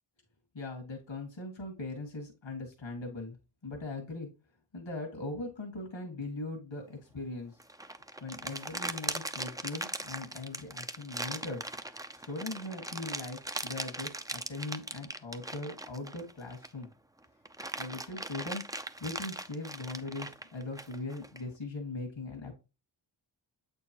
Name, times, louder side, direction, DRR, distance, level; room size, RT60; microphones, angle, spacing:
voice 1, 0.5-3.4 3.6-4.3 4.7-7.6 8.2-11.6 12.3-16.9 17.8-18.6 19.0-22.5, left 2 dB, 70° left, 1 dB, 2.0 m, -40 dB
sound 1, 7.6-16.8 17.2-21.4, right 1 dB, 10° right, 0.5 m, -39 dB
7.9 x 4.5 x 2.9 m, 0.29 s
wide cardioid pair, 65°, 46 cm